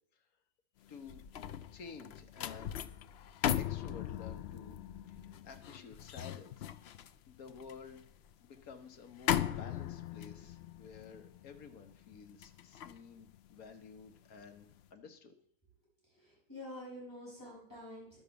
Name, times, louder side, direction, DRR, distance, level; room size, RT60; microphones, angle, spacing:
sound 1, 0.9-14.2 14.6-14.9, left 10 dB, 80° left, 0.5 m, -39 dB
voice 1, 0.9-1.2 1.7-3.0 3.6-4.8 5.1-6.7 7.3-8.0 8.4-15.3, left 5 dB, 65° left, 7 dB, 1.6 m, -52 dB
voice 2, 16.0-18.2, left 1 dB, 10° left, -6 dB, 5.3 m, -48 dB
10.5 x 7.0 x 6.9 m, 0.65 s
omnidirectional pair, 1.7 m